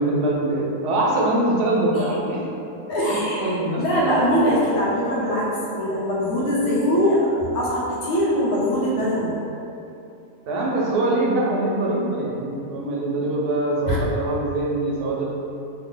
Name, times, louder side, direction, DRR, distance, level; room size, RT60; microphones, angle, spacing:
voice 1, 0.0-2.4 3.1-3.9 10.5-15.3, right 2 dB, 80° right, -4 dB, 1.2 m, -23 dB
voice 2, 2.9-9.4 13.9-14.0, equal, 75° left, -6 dB, 1.2 m, -22 dB
3.1 x 2.1 x 3.7 m, 2.8 s
omnidirectional pair, 1.6 m